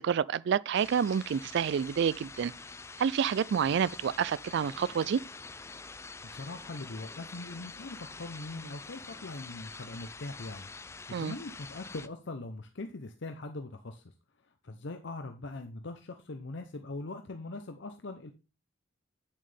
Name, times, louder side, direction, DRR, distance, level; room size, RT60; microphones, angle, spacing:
voice 1, 0.0-2.5 3.0-5.2 11.1-11.3, right 7 dB, 60° right, 0.3 m, -28 dB
sound 1, 0.7-12.1, left 4 dB, 15° left, 0.3 m, -46 dB
voice 2, 6.2-10.7 11.2-14.0 14.6-18.3, left 2 dB, 65° left, 0.7 m, -41 dB
8.7 x 7.3 x 3.4 m
head